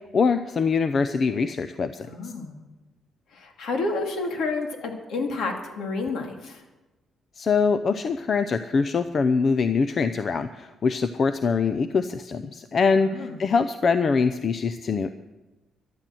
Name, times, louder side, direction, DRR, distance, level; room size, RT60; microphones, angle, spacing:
voice 1, 0.1-2.1 7.4-15.1, left 5 dB, 40° left, 11 dB, 0.6 m, -23 dB
voice 2, 2.0-2.6 3.3-6.6 13.0-13.4, left 3 dB, 65° left, 3 dB, 2.6 m, -30 dB
13.5 x 11.5 x 7.7 m, 1.1 s
cardioid pair, 130°, 0 cm